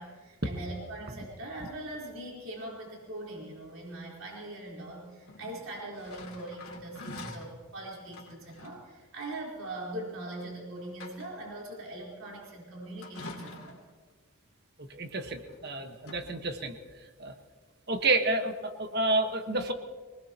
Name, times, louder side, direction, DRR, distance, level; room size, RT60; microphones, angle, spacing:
voice 1, 0.0-13.8, right 1 dB, 70° right, -4 dB, 4.1 m, -41 dB
sound 1, 5.2-7.5 8.1-8.8 10.3-10.4 10.8-11.5 13.0-13.9 15.1-15.7 16.0-16.2, left 2 dB, 85° left, 3.0 m, -46 dB
voice 2, 14.9-16.7 17.2-17.3 17.9-19.7, right 2 dB, 50° right, 6 dB, 1.4 m, -29 dB
24.5 x 19.5 x 3.0 m, 1.5 s
head